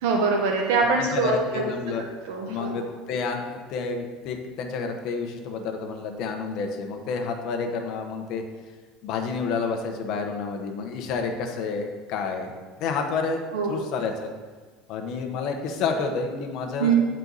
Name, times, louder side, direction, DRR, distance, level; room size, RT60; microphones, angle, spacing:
voice 1, 0.0-1.6 2.0-2.8 13.5-13.8 16.8-17.1, right 4 dB, 90° right, 1 dB, 0.8 m, -23 dB
voice 2, 1.0-2.0 2.5-8.4 9.0-12.5 12.8-13.4 13.7-14.3 14.9-17.0, left 4 dB, 55° left, 3 dB, 1.0 m, -29 dB
9.6 x 4.4 x 4.0 m, 1.4 s
cardioid pair, 135°, 0 cm